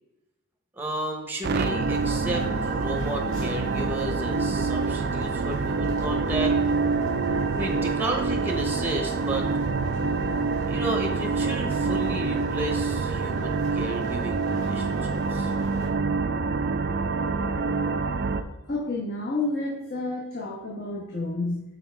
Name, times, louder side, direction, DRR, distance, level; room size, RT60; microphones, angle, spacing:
voice 1, 0.8-6.5 7.6-9.5 10.6-15.5, right 1 dB, 10° right, 1 dB, 0.8 m, -33 dB
sound 1, 1.4-18.4, right 4 dB, 45° right, 0.4 m, -26 dB
sound 2, 1.8-15.9, left 1 dB, 65° left, 1.8 m, -48 dB
voice 2, 18.7-21.6, left 2 dB, 45° left, -4 dB, 1.1 m, -30 dB
5.5 x 4.4 x 4.5 m, 0.98 s
head